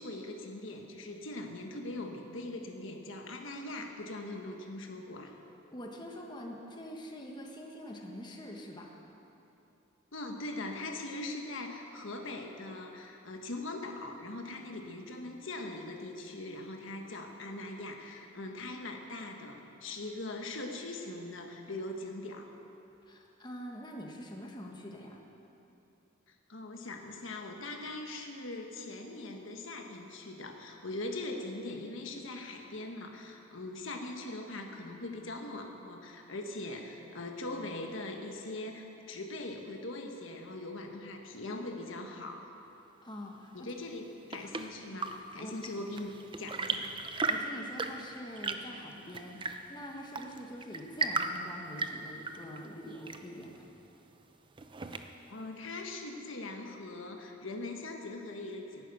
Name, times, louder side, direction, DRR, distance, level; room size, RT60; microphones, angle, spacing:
voice 1, 0.0-5.3 10.1-22.5 26.3-42.5 43.5-46.9 55.3-58.8, left 2 dB, 80° left, 3 dB, 1.4 m, -41 dB
voice 2, 5.7-8.9 23.1-25.2 43.0-43.7 44.4-44.7 45.4-45.5 47.3-53.7, equal, 25° left, 0 dB, 1.4 m, -45 dB
Chirp tweet / Engine / Tap, 43.9-55.4, right 4 dB, 25° right, 0.6 m, -38 dB
11.0 x 11.0 x 8.9 m, 2.9 s
head